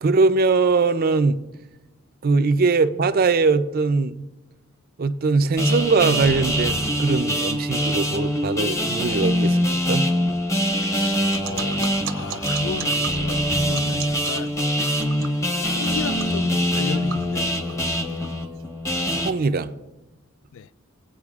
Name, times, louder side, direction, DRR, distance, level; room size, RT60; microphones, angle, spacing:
voice 1, 0.0-1.4 2.2-4.2 5.0-10.1 19.1-19.7, right 4 dB, 45° right, 0.5 m, -21 dB
sound 1, 5.6-19.3, equal, 15° left, 0.9 m, -23 dB
voice 2, 10.9-14.6 15.6-18.3 20.5-20.7, left 6 dB, 65° left, 0.3 m, -35 dB
sound 2, 11.2-18.6, right 8 dB, 75° right, 0.8 m, -38 dB
18.5 x 8.7 x 2.4 m
head